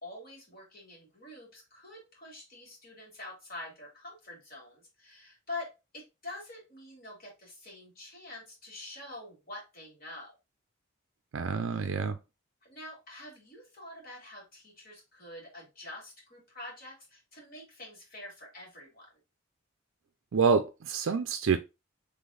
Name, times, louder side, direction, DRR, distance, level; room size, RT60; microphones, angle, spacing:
voice 1, 0.0-10.3 11.7-11.9 12.6-19.1, left 2 dB, 45° left, 2.6 m, -46 dB
voice 2, 11.3-12.2 20.3-21.6, right 5 dB, 65° right, 0.4 m, -27 dB
3.8 x 3.4 x 3.8 m
head